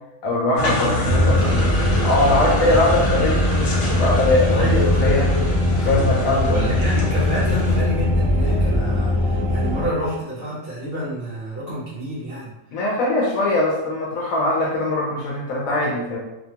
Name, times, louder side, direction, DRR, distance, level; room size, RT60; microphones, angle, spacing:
voice 1, 0.2-1.7 2.0-4.7 5.0-5.2 5.8-7.0 12.7-16.2, left 2 dB, 85° left, -4 dB, 1.0 m, -21 dB
sound 1, 0.6-7.8, left 1 dB, 55° left, 0.9 m, -26 dB
sound 2, 1.1-9.9, left 1 dB, 40° left, 0.4 m, -21 dB
voice 2, 4.5-5.6 6.2-12.5, equal, 55° right, -10 dB, 0.8 m, -27 dB
2.7 x 2.2 x 2.7 m, 0.99 s
omnidirectional pair, 1.4 m